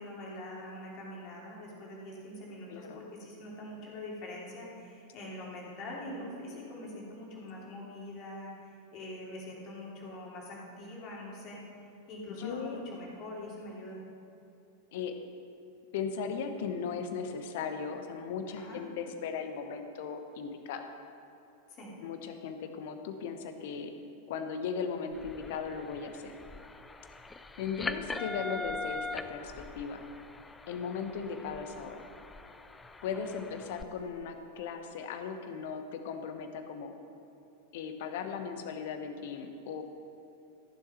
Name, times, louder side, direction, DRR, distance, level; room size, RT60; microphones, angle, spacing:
voice 1, 0.0-11.6 12.1-14.0 18.6-18.8 21.7-21.9 33.3-33.4, left 1 dB, 35° left, -3 dB, 3.0 m, -44 dB
voice 2, 2.7-3.0 7.6-7.7 12.3-12.8 14.9-15.2 15.9-20.9 22.0-23.9 24.3-26.3 27.6-30.1 30.7-32.1 33.0-36.9 37.7-39.8, left 6 dB, 50° left, 7 dB, 1.0 m, -37 dB
sound 1, 25.1-33.8, left 3 dB, 10° left, 0.4 m, -42 dB
14.0 x 7.3 x 5.8 m, 2.8 s
figure-of-eight pair, 90°, 0 cm